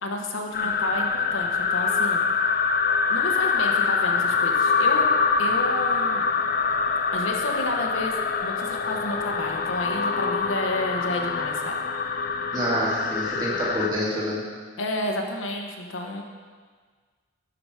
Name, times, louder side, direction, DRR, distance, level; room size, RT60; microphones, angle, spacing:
voice 1, 0.0-2.2 3.1-5.1 5.4-6.3 7.1-8.1 8.4-11.8 14.8-16.2, left 1 dB, 75° left, 2 dB, 1.0 m, -31 dB
sound 1, 0.5-13.9, left 5 dB, 45° left, 0.5 m, -24 dB
voice 2, 12.5-14.4, equal, 20° right, -7 dB, 2.0 m, -27 dB
12.0 x 4.8 x 5.0 m, 1.5 s
head